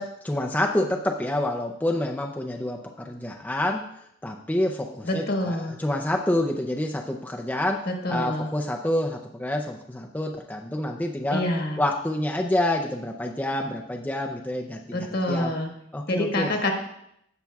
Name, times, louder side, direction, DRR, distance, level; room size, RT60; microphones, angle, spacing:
voice 1, 0.0-3.8 4.2-11.4 11.8-15.5 15.9-16.5, left 1 dB, 10° left, 1 dB, 0.4 m, -28 dB
voice 2, 5.0-5.8 8.0-8.5 11.3-11.8 14.9-15.7 16.1-16.7, left 1 dB, 55° left, 2 dB, 1.4 m, -26 dB
16.5 x 5.8 x 2.3 m, 0.77 s
head